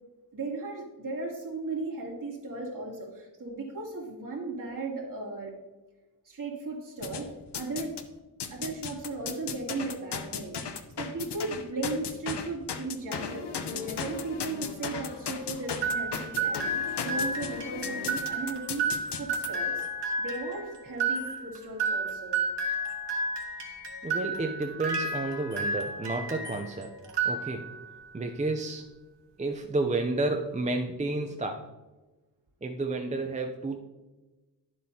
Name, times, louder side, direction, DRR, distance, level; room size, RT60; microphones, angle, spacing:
voice 1, 0.3-5.6 6.2-7.9 8.5-16.7 17.0-18.9 19.2-19.9 20.2-22.4, right 3 dB, 50° right, -5 dB, 2.9 m, -36 dB
sound 1, 7.0-8.1 8.4-19.5, left 6 dB, 75° left, 0.8 m, -36 dB
sound 2, 15.8-26.7 27.0-27.9, right 3 dB, 80° right, 1.7 m, -31 dB
voice 2, 24.0-26.9 27.2-27.7 28.1-28.8 29.4-31.7 32.6-33.8, right 2 dB, 20° right, 3 dB, 0.5 m, -31 dB
11.5 x 7.6 x 2.8 m, 1.1 s
wide cardioid pair, 140°, 41 cm